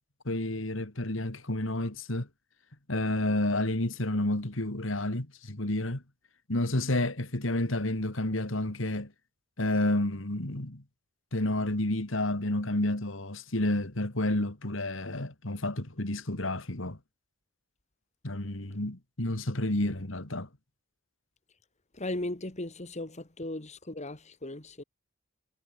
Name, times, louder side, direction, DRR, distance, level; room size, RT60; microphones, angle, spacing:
voice 1, 0.2-2.3 2.9-6.0 6.5-9.1 9.6-10.8 11.3-17.0 18.2-20.5, left 1 dB, 75° left, 2.7 m, -30 dB
voice 2, 21.9-24.8, left 1 dB, 35° left, 2.4 m, -37 dB
head